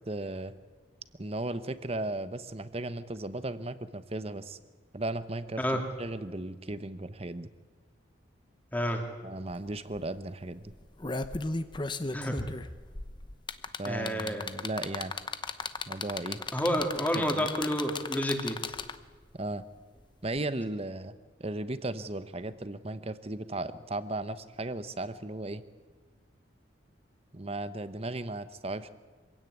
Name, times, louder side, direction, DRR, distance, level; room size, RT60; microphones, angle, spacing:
voice 1, 0.1-0.5 1.2-4.6 4.9-7.5 9.2-10.7 13.8-15.1 15.9-16.4 17.1-17.5 19.3-19.6 20.2-21.1 21.4-25.6 27.3-28.9, right 2 dB, 30° right, 13 dB, 1.0 m, -36 dB
voice 2, 8.7-9.0 12.1-12.5 13.8-14.5 16.5-18.6, equal, 10° left, 3 dB, 2.7 m, -29 dB
sound 1, 9.5-9.6 9.9-10.2 10.7-19.1 20.3-20.4, left 3 dB, 25° left, 0.9 m, -35 dB
25.5 x 16.5 x 9.6 m, 1.4 s
head